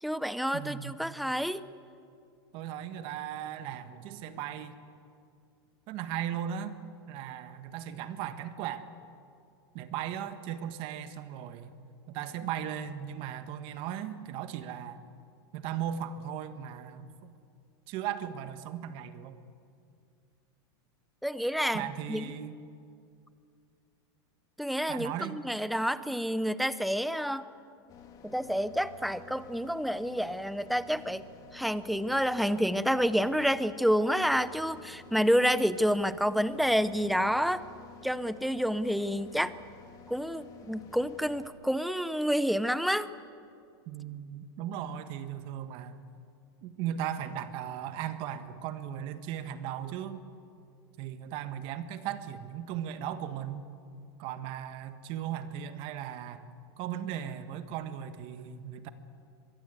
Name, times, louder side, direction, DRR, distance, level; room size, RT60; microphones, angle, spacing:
voice 1, 0.0-1.6 21.2-22.2 24.6-27.5 28.2-31.2 31.5-37.6 38.0-39.5 40.1-43.1, equal, ahead, 14 dB, 0.5 m, -29 dB
voice 2, 0.5-0.9 2.5-4.8 5.9-6.8 7.1-8.9 9.7-11.7 12.1-15.0 15.5-17.3 17.9-19.4 21.7-22.6 24.9-25.4 43.9-46.0 46.6-50.2 51.0-53.7 54.2-56.4 56.8-58.9, right 10 dB, 40° right, 10 dB, 1.4 m, -37 dB
sound 1, 27.9-41.5, left 6 dB, 25° left, 2.3 m, -51 dB
24.0 x 22.5 x 8.0 m, 2.4 s
supercardioid pair, 155°, 14 cm